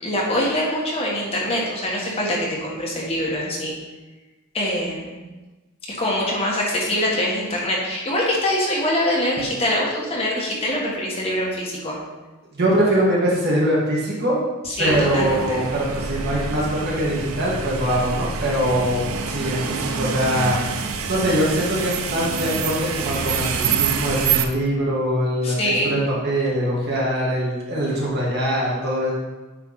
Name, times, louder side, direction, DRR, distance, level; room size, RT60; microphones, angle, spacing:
voice 1, 0.0-3.8 4.5-5.2 6.0-12.0 14.8-15.6 25.4-25.9, left 1 dB, 30° left, -4 dB, 1.6 m, -24 dB
voice 2, 12.5-14.4 14.8-19.0 19.3-20.7 21.1-25.5 25.8-29.1, equal, 50° right, -5 dB, 1.6 m, -22 dB
sound 1, 14.8-24.5, right 5 dB, 75° right, 0.6 m, -26 dB
9.1 x 3.5 x 4.0 m, 1.2 s
head